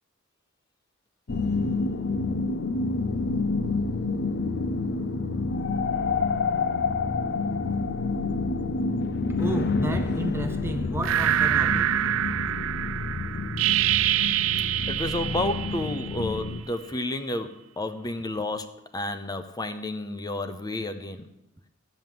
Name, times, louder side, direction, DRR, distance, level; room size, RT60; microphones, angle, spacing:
sound 1, 1.3-16.6, left 3 dB, 55° left, 0.5 m, -28 dB
voice 1, 9.4-12.0, right 1 dB, 10° right, 0.5 m, -32 dB
sound 2, 11.0-16.5, right 12 dB, 70° right, 0.3 m, -26 dB
voice 2, 14.9-21.3, left 2 dB, 20° left, 0.7 m, -31 dB
13.5 x 5.4 x 7.7 m
head